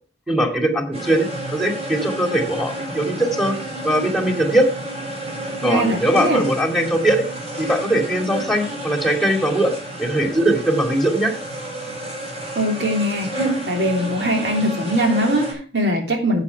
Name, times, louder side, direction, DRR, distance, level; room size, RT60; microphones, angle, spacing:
voice 1, 0.3-1.3 1.5-3.6 3.8-4.7 5.6-7.2 7.6-9.7 10.0-11.3, right 1 dB, ahead, 2.5 m, -20 dB
sound 1, 0.9-15.5, right 1 dB, 35° right, 7.0 m, -30 dB
voice 2, 5.6-6.4 12.5-16.4, equal, 75° right, 3.3 m, -21 dB
11.0 x 8.2 x 4.7 m
head